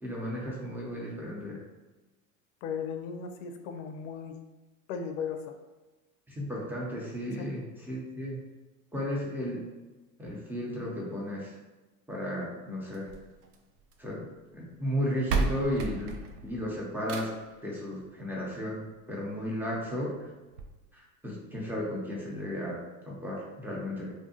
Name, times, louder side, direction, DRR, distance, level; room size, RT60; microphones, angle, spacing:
voice 1, 0.0-1.6 6.3-7.6 7.9-8.4 8.9-9.6 10.2-11.5 12.1-13.1 14.0-17.3 17.6-20.2 20.9-24.1, equal, 5° right, -4 dB, 0.8 m, -34 dB
voice 2, 2.6-4.4 4.9-5.5 7.3-7.5, left 6 dB, 60° left, 6 dB, 0.5 m, -36 dB
sound 1, 12.9-14.1 14.9-15.0 15.3-17.6 18.9-19.0 19.5-19.6 19.9-20.0 20.5-20.6, right 4 dB, 85° right, 0.5 m, -33 dB
2.7 x 2.3 x 2.8 m, 1.1 s
hypercardioid pair, 85°, 44 cm